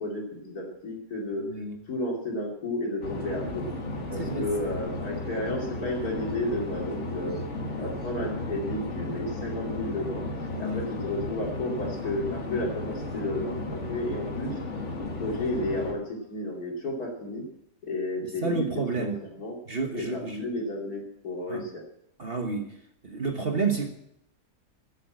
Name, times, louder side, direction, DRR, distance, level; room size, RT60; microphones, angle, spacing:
voice 1, 0.0-1.4 1.9-3.6 4.1-7.4 7.8-10.2 10.6-14.6 15.0-17.4 17.8-18.7 18.9-19.1 19.4-19.6 19.9-21.8, left 1 dB, 75° left, -1 dB, 3.1 m, -32 dB
voice 2, 1.4-1.8 4.2-4.5 10.5-10.9 18.4-19.1 19.7-20.5 21.5-21.6 22.2-22.7 23.0-23.9, right 4 dB, 40° right, 3 dB, 1.4 m, -30 dB
sound 1, 3.0-15.9, left 2 dB, 50° left, 1.9 m, -34 dB
13.5 x 7.4 x 7.6 m, 0.75 s
omnidirectional pair, 1.6 m